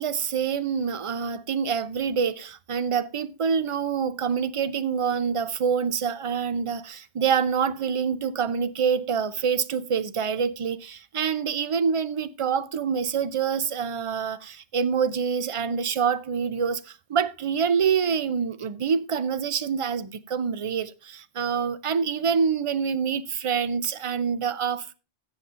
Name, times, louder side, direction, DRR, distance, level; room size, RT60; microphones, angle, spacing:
voice 1, 0.0-24.9, right 6 dB, 45° right, 0.4 m, -26 dB
16.0 x 7.0 x 2.5 m
omnidirectional pair, 1.1 m